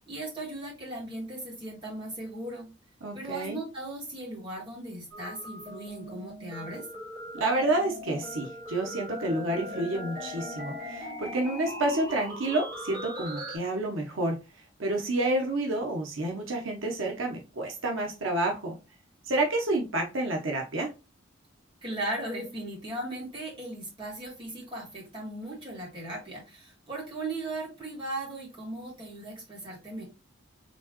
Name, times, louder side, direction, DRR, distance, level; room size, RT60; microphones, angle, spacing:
voice 1, 0.0-2.7 3.1-6.8 21.8-30.0, right 2 dB, 25° right, -4 dB, 2.7 m, -37 dB
voice 2, 3.0-3.6 7.3-14.3 14.8-18.7 19.3-20.9, right 2 dB, 85° right, 2 dB, 1.0 m, -29 dB
sound 1, 5.1-13.6, left 1 dB, 50° right, 2.3 m, -39 dB
4.3 x 3.7 x 3.0 m, 0.28 s
head